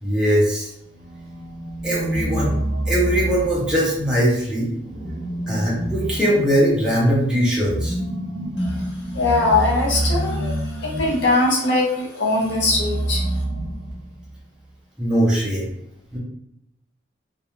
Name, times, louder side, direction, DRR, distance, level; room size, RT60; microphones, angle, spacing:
voice 1, 0.0-0.7 1.8-2.5 2.9-4.7 5.5-8.0 15.0-15.7 16.1-16.2, equal, 5° right, -7 dB, 0.6 m, -20 dB
sound 1, 0.8-4.2 4.8-11.4 12.4-14.4, right 1 dB, 55° right, 0.5 m, -27 dB
voice 2, 8.6-13.3, left 2 dB, 60° left, -2 dB, 0.7 m, -21 dB
2.3 x 2.3 x 3.0 m, 0.81 s
head